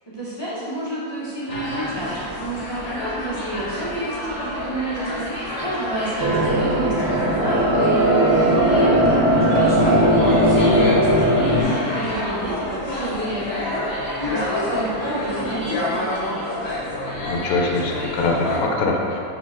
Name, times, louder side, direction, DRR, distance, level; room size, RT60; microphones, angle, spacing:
voice 1, 0.1-7.8 8.2-13.9 14.3-16.6, right 1 dB, 25° left, -10 dB, 0.6 m, -29 dB
sound 1, 1.5-18.7, left 1 dB, 45° left, 1.1 m, -28 dB
sound 2, 6.2-11.6, right 1 dB, 60° right, 0.6 m, -18 dB
voice 2, 17.2-19.2, left 2 dB, 70° left, 0 dB, 1.0 m, -23 dB
4.4 x 3.0 x 3.6 m, 2.5 s
omnidirectional pair, 1.6 m